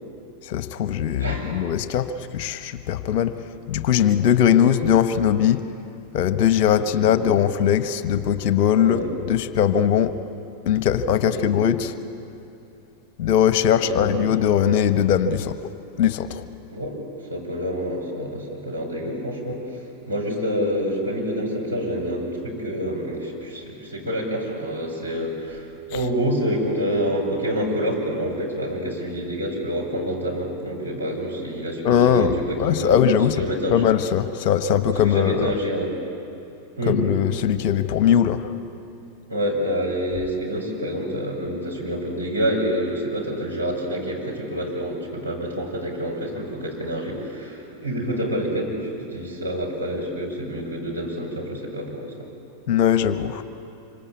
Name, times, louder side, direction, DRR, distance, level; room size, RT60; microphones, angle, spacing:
voice 1, 0.4-3.4 3.7-5.6 6.1-10.1 10.7-12.0 13.2-15.6 16.0-16.4 31.8-33.4 33.7-35.5 36.9-38.5 52.7-53.4, left 9 dB, 45° left, 11 dB, 1.2 m, -20 dB
voice 2, 1.2-1.5 6.8-7.2 8.8-9.1 11.3-11.5 13.8-14.2 16.7-17.0 17.3-19.6 20.1-33.0 33.3-33.8 34.8-35.9 36.8-37.0 39.3-52.3, equal, 90° right, -4 dB, 6.3 m, -27 dB
26.5 x 25.0 x 8.6 m, 2.8 s
figure-of-eight pair, 90°, 0 cm